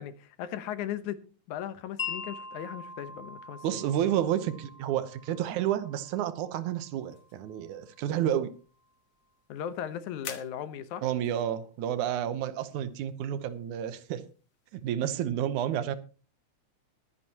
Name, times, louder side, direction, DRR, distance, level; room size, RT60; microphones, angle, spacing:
voice 1, 0.0-3.8 9.5-11.1, left 10 dB, 85° left, 2.5 m, -37 dB
Wind chime, 2.0-8.1, left 5 dB, 40° left, 0.5 m, -43 dB
voice 2, 3.6-8.5 11.0-14.2 14.7-16.0, right 10 dB, 85° right, 2.4 m, -30 dB
sound 1, 6.7-15.2, left 9 dB, 60° left, 2.2 m, -52 dB
22.0 x 10.0 x 2.9 m
omnidirectional pair, 3.3 m